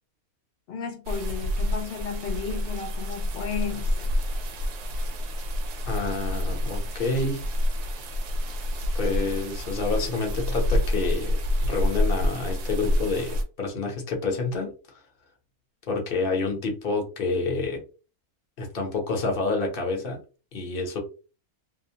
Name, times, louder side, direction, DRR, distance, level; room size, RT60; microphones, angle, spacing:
voice 1, 0.7-4.1, left 7 dB, 85° left, 0.5 m, -34 dB
sound 1, 1.1-13.4, left 1 dB, 85° right, 1.2 m, -28 dB
voice 2, 5.9-7.5 8.9-11.3 11.6-15.0 15.9-17.8 18.6-20.2 20.5-21.0, left 3 dB, 45° left, 0.8 m, -28 dB
2.8 x 2.1 x 2.7 m
omnidirectional pair, 1.6 m